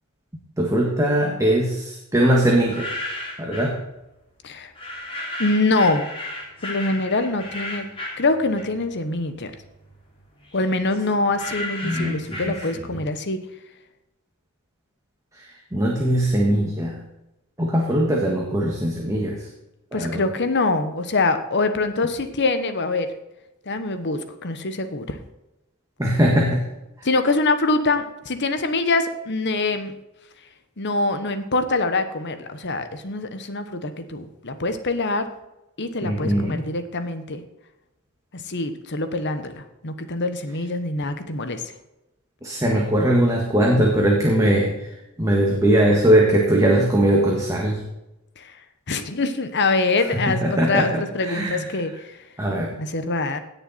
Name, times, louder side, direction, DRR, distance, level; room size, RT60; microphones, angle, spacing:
voice 1, 0.6-2.9 3.4-3.8 11.8-12.5 15.7-17.0 17.6-19.4 19.9-20.3 26.0-26.6 36.0-36.6 42.4-44.9 45.2-47.8 50.3-51.7 52.4-52.7, right 1 dB, 15° right, -2 dB, 1.7 m, -20 dB
sound 1, 2.5-3.8 4.7-9.0 9.3-13.1, left 1 dB, 25° left, 3.3 m, -34 dB
voice 2, 5.4-6.1 6.6-7.9 8.2-9.5 10.5-13.4 19.9-23.1 23.7-25.2 27.0-29.9 30.8-35.3 35.8-37.4 38.3-41.6 48.4-48.5 48.9-52.1 52.8-53.4, left 3 dB, 50° left, 9 dB, 1.2 m, -24 dB
17.0 x 6.8 x 4.3 m, 0.94 s
head